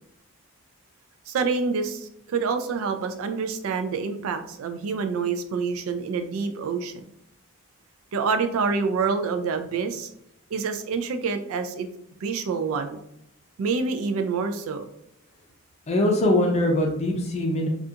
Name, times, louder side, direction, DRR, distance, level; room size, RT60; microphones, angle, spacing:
voice 1, 1.3-7.0 8.1-10.1 10.5-11.9 12.2-13.0 13.6-14.9, right 5 dB, 70° right, 8 dB, 0.3 m, -27 dB
voice 2, 15.9-17.7, left 1 dB, 30° left, 1 dB, 0.4 m, -22 dB
2.3 x 2.3 x 2.7 m, 0.77 s
head